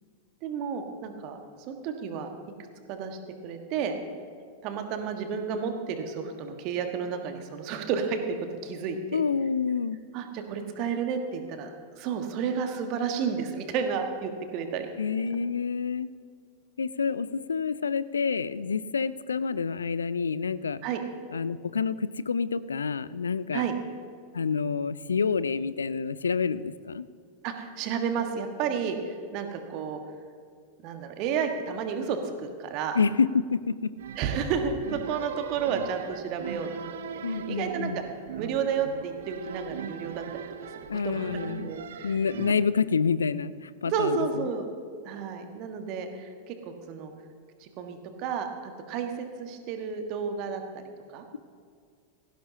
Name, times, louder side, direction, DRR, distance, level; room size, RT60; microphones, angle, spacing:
voice 1, 0.4-1.4 1.7-2.3 2.9-4.0 4.6-8.2 8.6-9.2 10.1-14.9 20.8-21.0 23.5-23.7 27.4-30.0 30.8-33.0 34.2-38.0 38.4-40.2 40.6-42.1 43.8-44.6 45.0-47.1 47.6-48.5 48.9-50.8 51.1-51.2, right 6 dB, 40° right, 6 dB, 1.4 m, -31 dB
voice 2, 9.1-10.0 15.0-16.1 16.8-20.8 21.3-23.7 24.3-27.1 32.9-33.9 37.2-38.0 40.9-41.7 42.0-44.5, left 5 dB, 70° left, 17 dB, 0.4 m, -28 dB
sound 1, 34.0-42.5, right 9 dB, 60° right, 0.6 m, -40 dB
17.5 x 15.5 x 2.8 m, 2.1 s
figure-of-eight pair, 90°, 0 cm